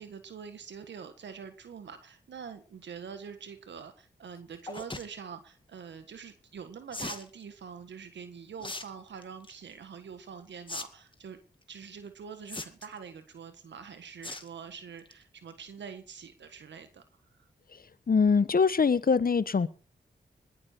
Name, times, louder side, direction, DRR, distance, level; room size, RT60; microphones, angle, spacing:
voice 1, 0.0-11.4 11.7-17.0 17.4-17.5, right 6 dB, 85° right, 1.6 m, -45 dB
sound 1, 4.7-5.1 6.9-7.3 8.6-8.8 9.2-9.5 10.7-10.8 11.1-11.2 12.5-13.0 14.2-14.5 14.9-15.1 15.5-15.6 15.8-15.9, left 2 dB, 25° left, 2.0 m, -38 dB
voice 2, 18.1-19.7, left 5 dB, 55° left, 1.1 m, -23 dB
20.5 x 12.0 x 4.5 m
cardioid pair, 40°, 18 cm